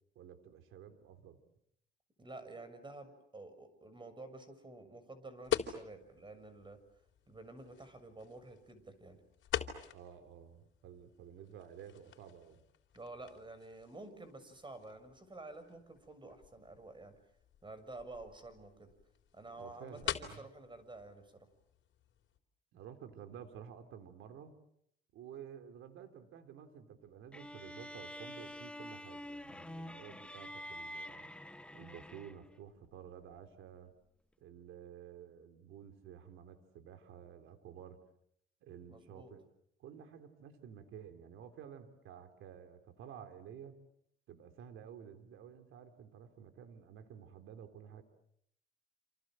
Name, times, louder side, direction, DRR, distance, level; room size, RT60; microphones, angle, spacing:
voice 1, 0.1-1.4 9.9-12.6 19.6-20.4 22.7-24.5 25.1-31.3 31.7-33.9 34.4-38.0 38.6-39.4 39.8-43.8 44.3-48.0, right 8 dB, 90° right, 8 dB, 3.5 m, -52 dB
voice 2, 2.2-6.8 7.3-9.2 12.9-17.2 17.6-18.9 19.3-21.5 38.9-39.3, right 2 dB, 25° right, 11 dB, 6.7 m, -50 dB
sound 1, 5.4-22.4, left 10 dB, 70° left, 3.7 m, -45 dB
sound 2, 27.3-32.6, equal, 5° left, 1.2 m, -47 dB
28.0 x 28.0 x 7.7 m, 0.74 s
cardioid pair, 90°, 20 cm